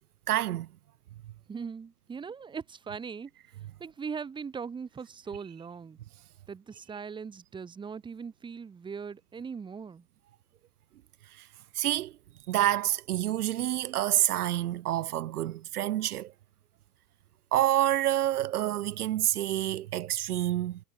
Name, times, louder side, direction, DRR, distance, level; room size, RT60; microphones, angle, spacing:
voice 1, 0.3-0.7 11.4-11.5 11.8-12.1 12.5-16.3 17.5-20.8, right 13 dB, 70° right, 2.1 m, -28 dB
voice 2, 1.5-3.3 3.8-6.0 6.5-10.1, right 6 dB, 10° right, 3.3 m, -40 dB
supercardioid pair, 165°, 47 cm